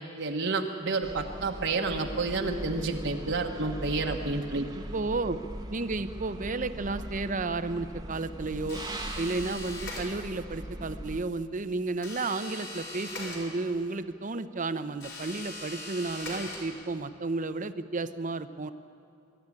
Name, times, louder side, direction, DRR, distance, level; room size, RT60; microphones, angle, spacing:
voice 1, 0.2-4.7, right 3 dB, 65° right, 2 dB, 1.3 m, -30 dB
sound 1, 1.0-11.2, right 1 dB, 20° right, 1.1 m, -40 dB
voice 2, 4.7-5.4 5.7-8.8 9.2-18.7, right 3 dB, 40° right, 11 dB, 0.8 m, -32 dB
sound 2, 8.7-10.5 12.0-13.9 15.0-17.0, left 2 dB, 65° left, 5.2 m, -41 dB
22.0 x 13.5 x 9.8 m, 2.5 s
head